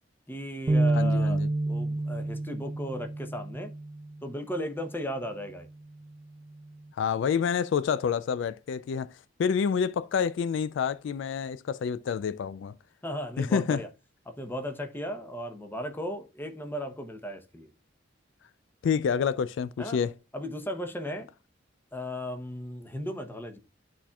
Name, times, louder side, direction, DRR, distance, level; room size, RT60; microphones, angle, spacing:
voice 1, 0.3-1.4 1.7-3.7 4.2-5.7 13.0-13.9 14.3-17.7 19.8-20.0 20.3-21.3 21.9-23.6, equal, 10° left, 0.8 m, -36 dB
sound 1, 0.7-4.2, right 2 dB, 20° right, 0.3 m, -28 dB
voice 2, 0.9-1.5 7.0-12.7 13.4-13.8 18.8-20.1, left 6 dB, 70° left, 0.3 m, -28 dB
12.5 x 4.2 x 2.3 m
head